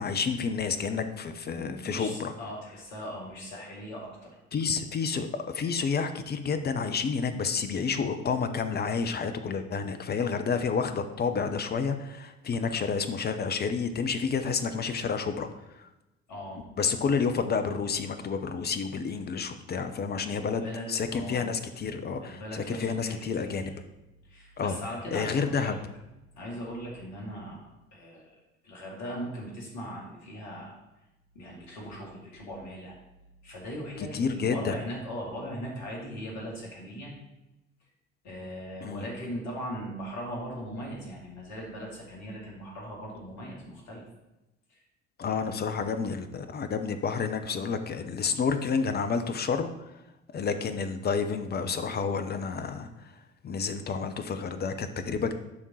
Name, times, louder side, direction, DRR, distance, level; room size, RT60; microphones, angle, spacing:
voice 1, 0.0-2.3 4.5-15.5 15.7-15.9 16.8-23.7 24.6-24.8 25.1-25.8 34.1-34.7 38.8-39.1 45.2-49.7 50.3-53.1 53.4-55.3, left 5 dB, 30° left, 9 dB, 0.7 m, -30 dB
voice 2, 1.5-4.3 16.3-16.6 20.1-21.4 22.2-23.7 24.2-25.7 26.4-28.3 28.6-30.8 31.3-33.0 33.4-37.1 38.2-44.0 44.7-44.8 45.2-45.9, equal, 55° left, -2 dB, 2.4 m, -39 dB
11.0 x 3.7 x 4.2 m, 0.97 s
figure-of-eight pair, 55°, 32 cm